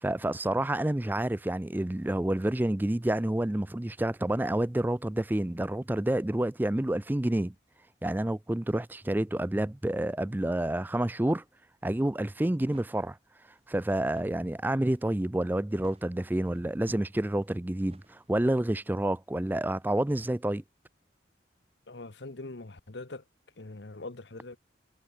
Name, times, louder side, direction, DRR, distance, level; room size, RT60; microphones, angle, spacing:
voice 1, 0.0-7.5 8.0-11.4 11.8-13.2 13.7-20.6, right 1 dB, 10° right, 0.4 m, -29 dB
sound 1, 12.6-18.7, right 1 dB, 30° right, 8.0 m, -62 dB
voice 2, 21.9-23.2 23.6-24.6, left 2 dB, 70° left, 1.2 m, -42 dB
head